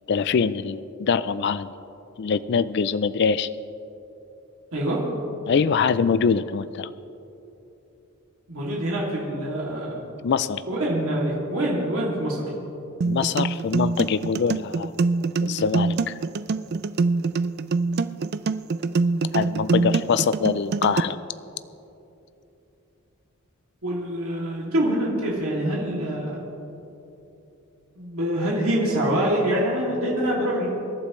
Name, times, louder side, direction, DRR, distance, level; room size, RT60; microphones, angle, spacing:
voice 1, 0.1-1.7 2.2-3.5 5.5-6.9 10.2-10.6 13.0-15.0 15.4-16.2 19.3-21.2, left 6 dB, 50° left, 15 dB, 0.4 m, -23 dB
voice 2, 4.7-5.0 8.5-10.0 10.7-12.4 23.8-26.4 28.0-30.7, right 1 dB, 70° right, -4 dB, 2.6 m, -25 dB
sound 1, 13.0-21.0, right 4 dB, 45° right, 0.3 m, -24 dB
26.0 x 11.5 x 3.2 m, 2.9 s
head